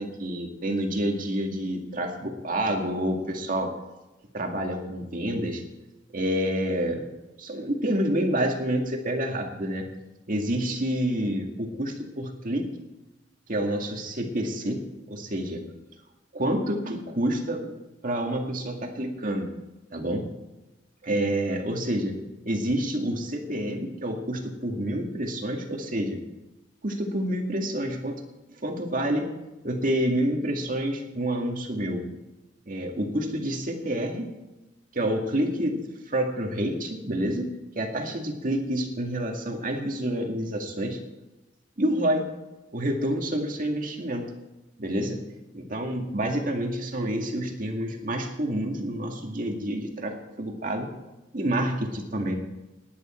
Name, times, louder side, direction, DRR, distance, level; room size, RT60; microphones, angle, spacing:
voice 1, 0.0-3.7 4.3-5.6 6.1-7.1 7.4-9.9 10.3-12.7 13.5-14.8 15.1-15.6 16.3-17.7 18.0-19.5 19.9-20.3 21.0-22.1 22.5-26.2 26.8-28.2 28.6-29.3 29.6-32.0 32.7-34.3 34.9-35.8 36.1-37.5 37.7-41.0 41.8-42.3 42.7-44.3 44.8-45.2 45.5-50.9 51.3-52.3, right 1 dB, 45° right, 3 dB, 2.0 m, -28 dB
19.5 x 10.0 x 4.4 m, 1.0 s
head